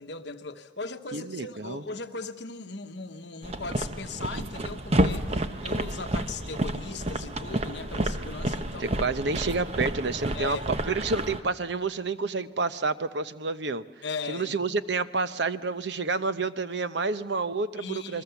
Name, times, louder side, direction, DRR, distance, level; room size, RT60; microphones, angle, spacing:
voice 1, 0.0-9.0 10.3-10.7 14.0-14.6 17.8-18.2, left 4 dB, 60° left, 8 dB, 1.1 m, -38 dB
voice 2, 1.1-1.8 8.8-10.6 10.9-13.8 14.3-18.2, right 3 dB, 65° right, 12 dB, 0.8 m, -29 dB
sound 1, 3.4-11.4, right 1 dB, 35° right, 1.0 m, -30 dB
28.5 x 22.0 x 7.1 m, 1.2 s
head